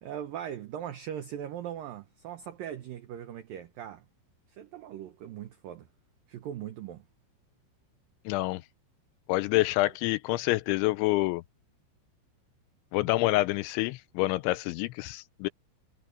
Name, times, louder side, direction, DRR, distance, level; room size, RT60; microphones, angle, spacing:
voice 1, 0.0-4.0 4.5-5.9 6.3-7.0, right 10 dB, 85° right, 2.0 m, -40 dB
voice 2, 8.3-8.6 9.3-11.4 12.9-15.5, left 19 dB, 85° left, 2.8 m, -27 dB
omnidirectional pair, 5.6 m